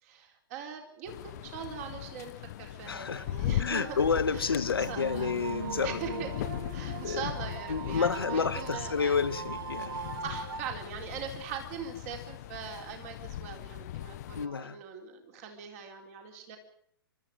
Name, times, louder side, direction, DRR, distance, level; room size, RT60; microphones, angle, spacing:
voice 1, 0.0-4.0 4.3-4.6 4.9-5.3 5.8-6.3 6.7-9.2 9.9-16.6, right 6 dB, 40° right, 4.1 m, -41 dB
sound 1, 1.1-14.5, left 13 dB, 45° left, 0.8 m, -39 dB
voice 2, 2.9-3.2 3.6-6.2 7.0-7.3 7.7-10.0 14.4-14.8, left 5 dB, 70° left, 1.2 m, -30 dB
sound 2, 3.7-10.6, right 7 dB, 65° right, 1.9 m, -41 dB
30.0 x 13.5 x 7.9 m
figure-of-eight pair, 110°, 13 cm